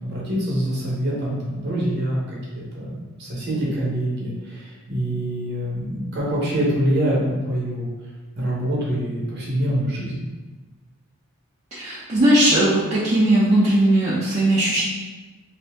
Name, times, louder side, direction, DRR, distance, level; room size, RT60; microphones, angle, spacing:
voice 1, 0.0-7.9 8.4-10.2, right 1 dB, 50° right, -4 dB, 0.9 m, -25 dB
voice 2, 11.7-14.8, right 1 dB, 30° right, -10 dB, 0.5 m, -18 dB
2.7 x 2.6 x 3.4 m, 1.3 s
head